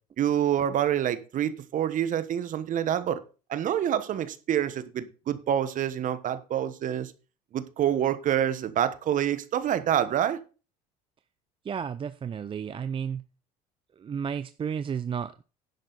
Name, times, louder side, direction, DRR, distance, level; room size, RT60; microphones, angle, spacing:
voice 1, 0.2-3.2 3.5-7.1 7.5-10.4, right 10 dB, 50° right, 1.3 m, -27 dB
voice 2, 11.6-13.2 14.0-15.4, right 7 dB, 30° right, 0.6 m, -32 dB
11.0 x 7.9 x 4.1 m
hypercardioid pair, 75°, 18 cm